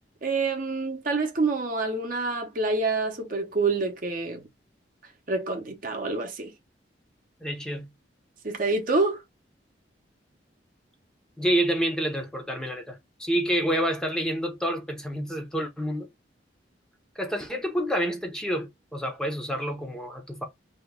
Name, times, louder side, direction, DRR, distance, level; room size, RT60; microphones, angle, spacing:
voice 1, 0.2-4.4 5.3-6.5 8.4-9.2, right 3 dB, 50° right, 0.8 m, -27 dB
voice 2, 7.4-7.9 11.4-16.1 17.2-20.4, equal, 5° left, 0.6 m, -28 dB
2.8 x 2.2 x 3.4 m
head